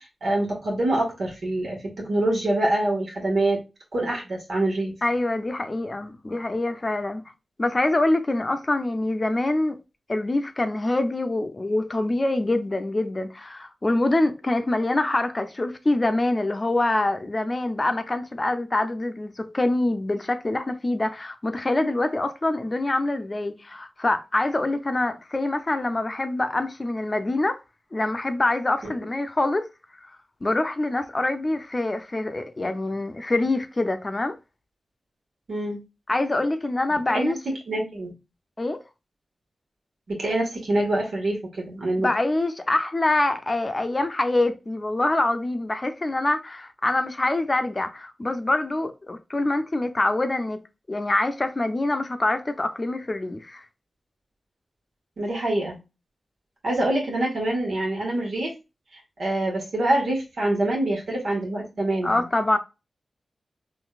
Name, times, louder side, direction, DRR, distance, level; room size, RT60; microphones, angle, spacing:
voice 1, 0.0-3.6 3.9-4.9 35.5-35.8 37.1-37.3 37.7-38.1 40.1-42.1 55.2-55.8 56.6-58.5 59.2-62.2, right 1 dB, 75° right, 1.6 m, -25 dB
voice 2, 5.0-7.2 7.6-9.8 10.1-27.6 27.9-29.7 30.0-30.1 30.4-34.3 36.1-37.4 38.6-38.8 42.0-50.6 50.9-53.6 62.0-62.6, left 2 dB, 35° left, 0.6 m, -25 dB
3.9 x 2.6 x 2.4 m
cardioid pair, 45°, 0 cm